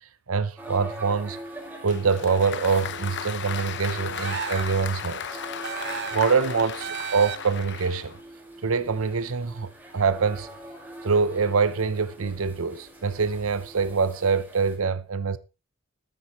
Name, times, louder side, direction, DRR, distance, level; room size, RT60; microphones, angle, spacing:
voice 1, 0.0-1.4 1.8-5.2 6.1-8.1 8.6-10.5 11.0-15.4, right 5 dB, 90° right, 0.8 m, -25 dB
sound 1, 0.6-14.8, right 1 dB, 10° right, 5.0 m, -44 dB
Applause, 1.9-8.2, left 7 dB, 60° left, 1.0 m, -35 dB
sound 2, 4.1-4.8 5.6-6.3 6.8-7.6, right 8 dB, 55° right, 0.6 m, -34 dB
14.0 x 12.5 x 3.1 m
head